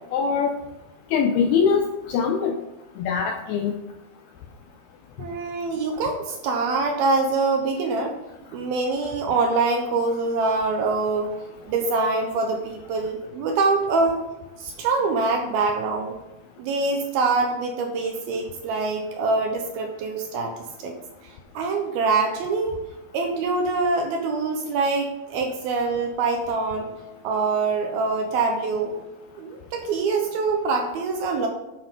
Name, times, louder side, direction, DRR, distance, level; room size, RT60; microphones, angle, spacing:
voice 1, 0.1-0.5 1.1-2.6 3.0-3.7, left 6 dB, 90° left, 4 dB, 2.2 m, -22 dB
voice 2, 5.2-8.2 8.5-11.4 11.7-14.2 14.6-16.2 16.6-20.5 20.8-20.9 21.2-22.8 23.1-26.9 27.2-29.0 29.4-31.5, right 3 dB, 75° right, 3 dB, 2.4 m, -24 dB
8.6 x 7.7 x 3.7 m, 1.0 s
omnidirectional pair, 5.1 m